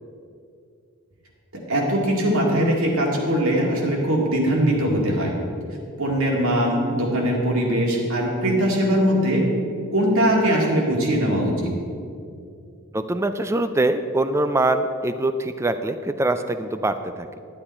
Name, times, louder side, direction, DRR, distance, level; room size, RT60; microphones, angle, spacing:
voice 1, 1.5-5.3 6.0-9.4 9.9-11.7, equal, 65° right, -2 dB, 2.2 m, -21 dB
voice 2, 12.9-17.4, right 2 dB, 10° right, 10 dB, 0.4 m, -23 dB
12.5 x 8.8 x 4.3 m, 2.4 s
head